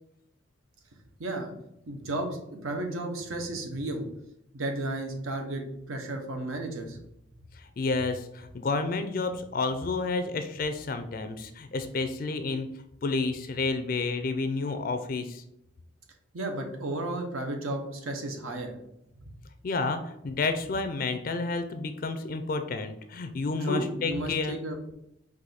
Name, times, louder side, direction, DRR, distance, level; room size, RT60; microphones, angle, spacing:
voice 1, 1.2-1.5 1.9-4.1 4.5-7.0 16.3-18.8 23.6-24.8, right 1 dB, 90° right, 4 dB, 0.9 m, -33 dB
voice 2, 7.6-12.7 13.0-15.4 19.6-24.5, left 3 dB, 45° left, 8 dB, 0.3 m, -30 dB
4.7 x 2.6 x 4.0 m, 0.80 s
head